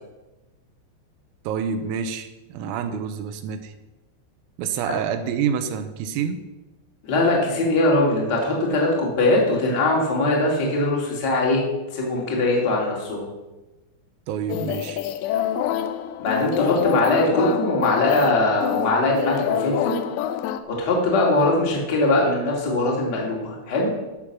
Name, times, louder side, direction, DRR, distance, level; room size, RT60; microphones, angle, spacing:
voice 1, 1.5-3.7 4.6-6.4 14.3-15.0, right 7 dB, 85° right, 9 dB, 3.4 m, -27 dB
voice 2, 7.0-11.6 11.9-13.3 16.2-20.0 20.7-23.9, left 2 dB, 35° left, -2 dB, 1.8 m, -21 dB
sound 1, 14.5-20.6, left 11 dB, 85° left, 3.0 m, -26 dB
14.5 x 6.4 x 6.0 m, 1.1 s
omnidirectional pair, 5.9 m